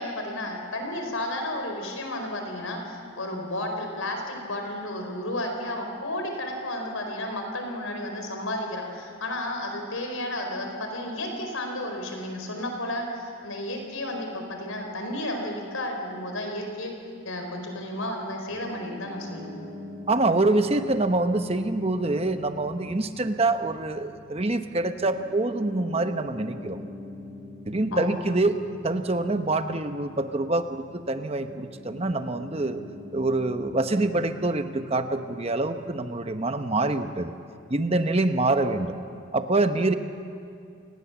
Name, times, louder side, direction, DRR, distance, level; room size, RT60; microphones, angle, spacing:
voice 1, 0.0-16.9 17.2-19.6 27.9-28.2, left 1 dB, 80° left, 3 dB, 4.5 m, -32 dB
Piano, 18.5-37.9, left 2 dB, 15° right, 6.9 m, -45 dB
voice 2, 20.1-26.8 27.7-28.6 28.8-32.8 33.1-37.3 37.7-39.0 39.3-39.9, right 2 dB, 30° right, 8 dB, 0.9 m, -25 dB
28.5 x 19.0 x 7.2 m, 2.3 s
head